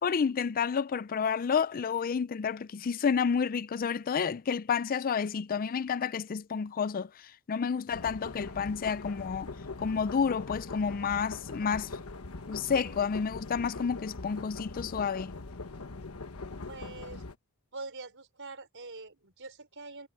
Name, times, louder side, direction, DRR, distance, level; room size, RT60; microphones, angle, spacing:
voice 1, 0.0-7.1 7.5-9.5 9.8-11.9 12.5-15.3, left 6 dB, 40° left, 0.4 m, -30 dB
sound 1, 7.9-17.3, left 3 dB, 80° left, 1.3 m, -42 dB
voice 2, 16.7-17.2 17.7-20.1, right 3 dB, 60° right, 5.7 m, -44 dB
head